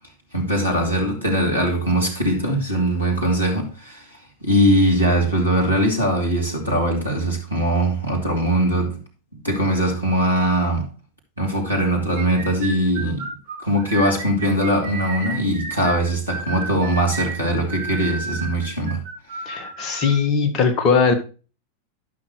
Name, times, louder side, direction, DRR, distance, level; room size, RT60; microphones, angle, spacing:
voice 1, 0.3-4.2 4.4-9.0 9.4-10.9 11.4-13.3 13.6-19.0 19.3-19.5, right 1 dB, 85° right, 2.7 m, -21 dB
sound 1, 12.2-20.2, right 4 dB, 50° right, 2.3 m, -32 dB
voice 2, 19.5-21.1, left 5 dB, 35° left, 1.6 m, -19 dB
12.0 x 6.0 x 3.2 m
figure-of-eight pair, 90°, 0 cm